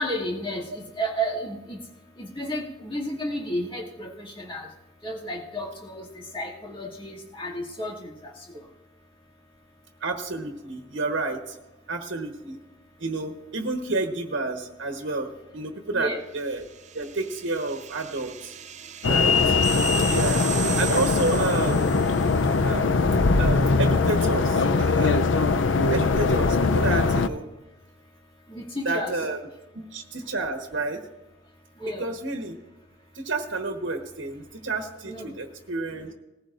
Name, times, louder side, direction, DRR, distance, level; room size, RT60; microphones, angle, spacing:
voice 1, 0.0-1.8 2.2-4.7 5.0-8.1 8.4-8.5 15.9-16.2 24.5-24.7 28.5-29.2 31.8-32.1 35.0-35.4, equal, 30° left, -4 dB, 2.4 m, -32 dB
voice 2, 10.0-11.5 11.9-12.6 13.0-16.6 16.9-18.5 19.0-19.5 20.1-20.4 20.8-22.0 22.6-23.0 23.4-25.2 25.9-27.5 28.8-29.5 29.9-31.0 32.0-32.6 33.1-36.1, right 3 dB, 85° right, 3 dB, 1.3 m, -30 dB
sound 1, 16.5-22.4, right 8 dB, 40° right, 0.6 m, -36 dB
sound 2, 19.0-27.3, left 4 dB, 85° left, 0.6 m, -21 dB
19.0 x 15.0 x 2.6 m, 1.0 s
head